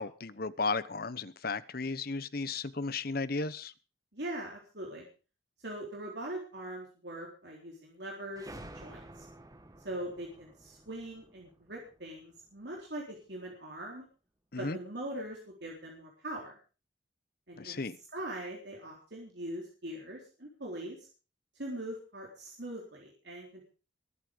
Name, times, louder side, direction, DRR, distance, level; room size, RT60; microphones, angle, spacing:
voice 1, 0.0-3.7 14.5-14.8 17.6-18.0, left 3 dB, 55° left, 16 dB, 1.0 m, -34 dB
voice 2, 4.1-5.1 5.6-9.3 9.8-14.1 14.6-16.6 17.5-17.8 18.1-21.1 21.6-23.6, right 1 dB, 60° right, -1 dB, 3.9 m, -42 dB
sound 1, 8.4-12.8, right 1 dB, 20° right, 1.5 m, -51 dB
22.0 x 8.3 x 5.3 m, 0.36 s
head